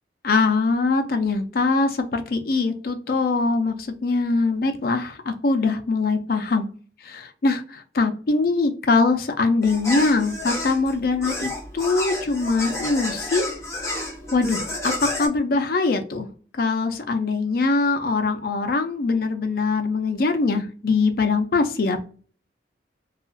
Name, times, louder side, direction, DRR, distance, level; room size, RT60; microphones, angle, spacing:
voice 1, 0.2-6.7 7.0-13.4 14.3-16.3 16.6-22.0, left 3 dB, 55° left, 7 dB, 0.4 m, -22 dB
sound 1, 9.6-15.3, left 1 dB, 15° left, 0.9 m, -30 dB
2.8 x 2.4 x 2.5 m, 0.41 s
head